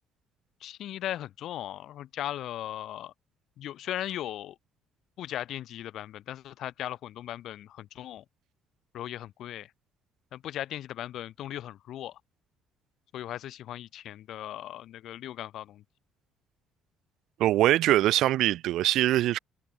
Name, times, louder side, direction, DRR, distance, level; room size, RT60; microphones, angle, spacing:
voice 1, 0.6-3.1 3.6-4.6 5.2-8.2 8.9-9.7 10.3-12.2 13.1-15.8, left 12 dB, 60° left, 3.2 m, -38 dB
voice 2, 17.4-19.4, right 14 dB, 60° right, 0.9 m, -23 dB
figure-of-eight pair, 50°, 0 cm